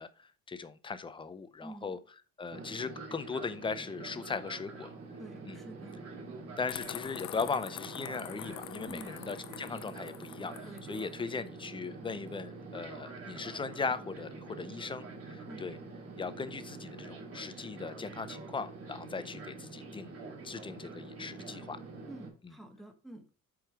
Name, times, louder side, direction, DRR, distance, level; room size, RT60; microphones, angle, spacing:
voice 1, 0.0-2.0 2.4-4.9 5.5-5.6 6.6-10.6 10.9-15.8 16.2-20.1 20.4-21.8 22.4-22.5, left 4 dB, 15° left, 13 dB, 0.5 m, -38 dB
voice 2, 1.6-2.0 5.2-6.0 8.8-9.1 10.6-10.8 15.5-15.7 22.1-23.3, right 1 dB, ahead, 4 dB, 1.1 m, -48 dB
Fixed-wing aircraft airplane, 2.5-22.3, right 3 dB, 50° right, 2.5 m, -46 dB
sound 1, 6.7-11.1, left 15 dB, 70° left, 0.6 m, -45 dB
8.0 x 4.8 x 4.9 m, 0.36 s
cardioid pair, 165°, 30 cm